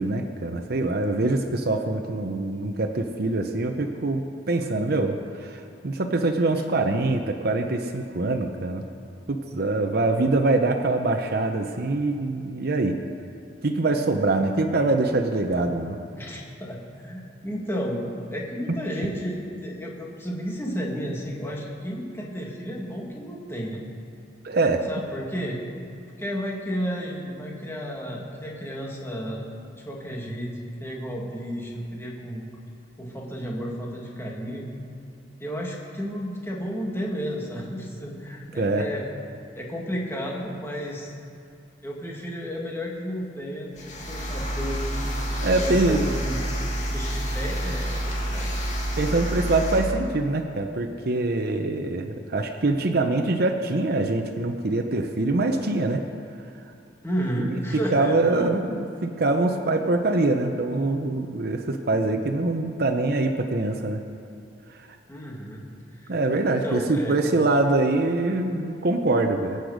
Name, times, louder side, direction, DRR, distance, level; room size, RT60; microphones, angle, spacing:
voice 1, 0.0-8.8 9.3-13.0 13.6-16.0 24.4-24.8 38.6-38.8 45.4-46.0 49.0-56.0 57.4-57.5 57.9-64.0 66.1-69.6, right 2 dB, 60° right, 4 dB, 0.8 m, -24 dB
voice 2, 16.1-23.8 24.9-25.6 26.2-29.5 29.7-30.5 30.8-32.5 33.0-34.7 35.4-39.0 39.6-41.1 41.8-43.7 44.1-44.9 45.6-46.4 46.9-48.6 57.0-58.5 65.1-65.6 65.9-66.1 66.5-67.2, equal, 15° left, -2 dB, 2.0 m, -32 dB
sound 1, 43.7-49.9, equal, 40° left, 2.2 m, -28 dB
22.5 x 7.9 x 5.1 m, 2.5 s
head